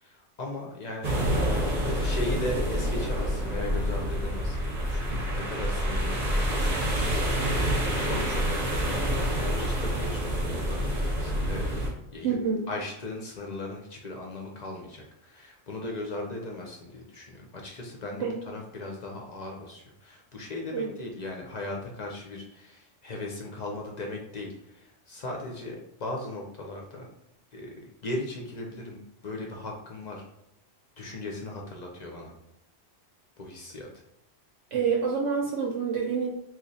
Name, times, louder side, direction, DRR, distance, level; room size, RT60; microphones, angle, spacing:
voice 1, 0.0-1.2 2.0-7.1 8.0-9.1 9.5-11.6 12.1-12.3 12.7-27.1 27.5-27.7 28.0-30.2 31.0-32.3 33.4-33.9, left 2 dB, 50° left, 0 dB, 0.5 m, -38 dB
sound 1, 1.0-11.9, equal, 40° right, 0.7 m, -27 dB
voice 2, 12.2-12.7 18.2-18.4 20.7-20.9 34.7-36.3, right 6 dB, 75° right, -1 dB, 1.0 m, -27 dB
3.0 x 2.4 x 4.0 m, 0.84 s
omnidirectional pair, 1.3 m